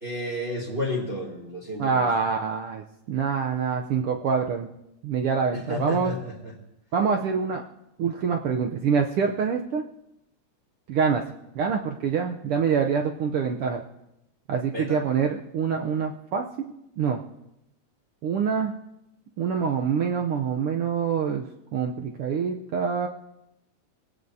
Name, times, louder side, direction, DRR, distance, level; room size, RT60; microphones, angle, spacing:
voice 1, 0.0-2.0 5.5-6.5 14.7-15.0, left 1 dB, 20° right, -3 dB, 2.6 m, -31 dB
voice 2, 1.8-4.7 5.0-6.1 6.9-7.6 8.0-9.8 10.9-11.2 11.5-13.8 14.5-16.4 17.0-17.2 18.2-18.7 19.4-21.5 21.7-23.1, right 6 dB, 80° right, 3 dB, 1.2 m, -25 dB
24.5 x 17.0 x 2.7 m, 0.85 s
omnidirectional pair, 3.5 m